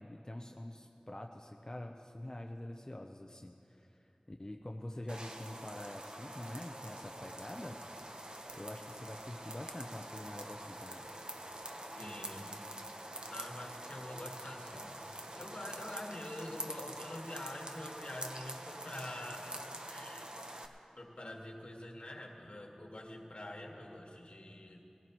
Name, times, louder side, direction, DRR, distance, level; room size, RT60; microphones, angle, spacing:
voice 1, 0.0-7.8 8.5-11.1, left 1 dB, 35° left, 3 dB, 0.7 m, -46 dB
sound 1, 5.1-20.7, right 1 dB, 45° right, 1.0 m, -46 dB
voice 2, 12.0-12.5 13.3-20.3 21.0-24.8, left 1 dB, 60° left, 0 dB, 1.8 m, -46 dB
21.0 x 15.0 x 3.1 m, 2.8 s
wide cardioid pair, 45°, 2 cm